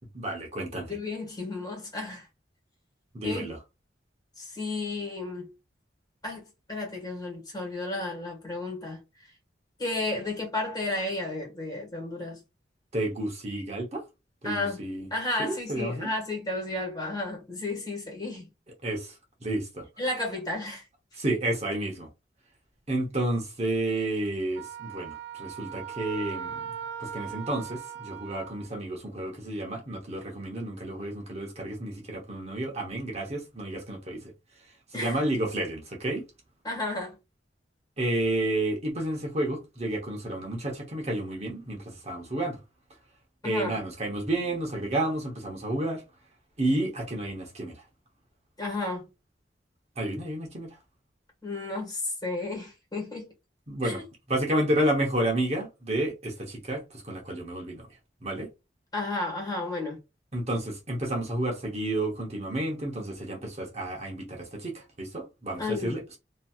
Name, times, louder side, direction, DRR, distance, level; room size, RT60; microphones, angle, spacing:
voice 1, 0.1-1.0 3.1-3.6 12.9-14.0 14.4-15.1 15.4-16.1 18.8-19.2 19.4-19.9 21.1-22.1 22.9-26.6 27.0-34.3 34.9-36.2 38.0-42.6 43.4-46.0 46.6-47.8 50.0-50.8 53.7-54.0 54.3-57.9 58.2-58.5 60.3-66.2, right 1 dB, 40° right, 0.9 m, -31 dB
voice 2, 0.9-2.3 3.2-3.4 4.4-5.5 6.2-9.0 9.8-12.4 14.4-14.8 15.1-18.5 20.0-20.8 34.9-35.2 36.6-37.2 43.4-43.8 48.6-49.1 51.4-53.3 53.8-54.0 58.9-60.0 65.6-66.0, left 2 dB, 25° left, 1.5 m, -32 dB
Wind instrument woodwind instrument, 24.5-28.7, right 8 dB, 70° right, 0.3 m, -39 dB
3.0 x 2.7 x 2.3 m
head